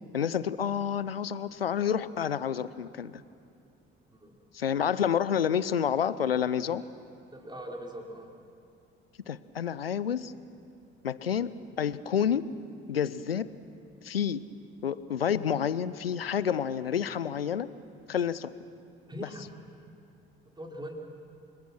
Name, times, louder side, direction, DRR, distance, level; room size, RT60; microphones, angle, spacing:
voice 1, 0.1-3.1 4.5-6.9 9.3-10.3 11.0-12.5 12.9-13.5 14.0-14.4 14.8-17.7 18.1-18.5 19.2-19.3, left 8 dB, 90° left, 17 dB, 0.5 m, -29 dB
voice 2, 7.3-8.3 19.1-19.5 20.5-20.9, equal, 15° right, 0 dB, 4.4 m, -41 dB
29.0 x 21.5 x 6.2 m, 2.6 s
figure-of-eight pair, 45°, 29 cm